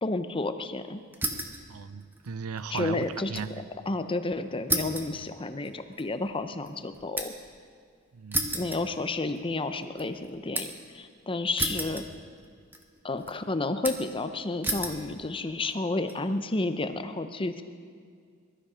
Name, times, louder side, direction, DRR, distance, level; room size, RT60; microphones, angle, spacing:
voice 1, 0.0-1.0 2.7-3.3 3.9-7.3 8.4-12.0 13.0-17.6, left 2 dB, 25° left, 9 dB, 0.7 m, -31 dB
sound 1, 1.1-1.7 2.0-3.5 3.8-3.9 4.7-7.5 8.3-9.5 9.8-10.9 11.6-12.5 12.7-13.3 13.8-14.2 14.6-15.0 15.7-16.1, right 2 dB, 10° right, 1.1 m, -33 dB
voice 2, 1.7-3.5 8.1-8.5, right 5 dB, 85° right, 14 dB, 0.6 m, -36 dB
22.0 x 12.5 x 5.0 m, 2.1 s
head